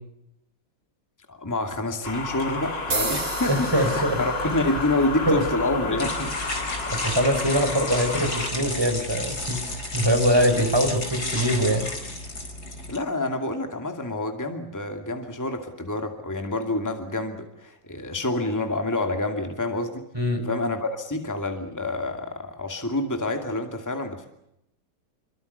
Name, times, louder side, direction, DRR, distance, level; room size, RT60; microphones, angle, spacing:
voice 1, 1.3-6.3 12.9-20.1 20.4-24.3, left 2 dB, 10° left, 5 dB, 2.5 m, -28 dB
sound 1, 2.0-8.5, left 3 dB, 75° left, 3.4 m, -32 dB
sound 2, 2.9-11.0, right 3 dB, 85° right, 4.2 m, -37 dB
voice 2, 3.5-4.2 5.3-5.4 6.9-11.9 20.1-20.4, equal, 10° right, 5 dB, 5.2 m, -23 dB
sound 3, 4.4-13.0, left 2 dB, 55° left, 5.3 m, -33 dB
28.0 x 23.5 x 6.9 m, 0.82 s
omnidirectional pair, 2.0 m